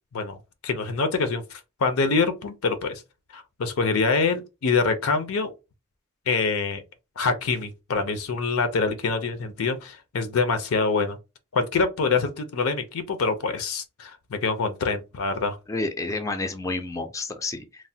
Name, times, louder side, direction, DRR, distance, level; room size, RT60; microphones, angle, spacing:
voice 1, 0.6-3.0 3.3-5.5 6.3-6.8 7.2-11.2 11.5-15.6, left 4 dB, 80° left, 0.5 m, -25 dB
voice 2, 15.7-17.9, left 3 dB, 15° left, 0.3 m, -30 dB
3.1 x 2.1 x 2.7 m
head